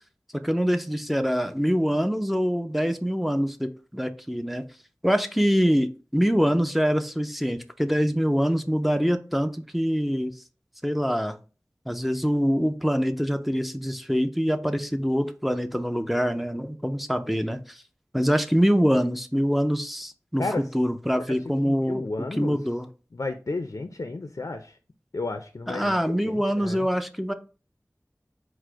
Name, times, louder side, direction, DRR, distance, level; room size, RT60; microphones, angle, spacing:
voice 1, 0.3-4.6 5.0-10.3 10.8-11.4 11.9-17.8 18.1-22.0 22.3-22.9 25.7-27.3, equal, ahead, 0.5 m, -24 dB
voice 2, 21.6-22.6 23.1-24.8 25.1-26.9, left 3 dB, 70° left, 0.4 m, -32 dB
4.8 x 2.1 x 4.5 m
wide cardioid pair, 50°, 6 cm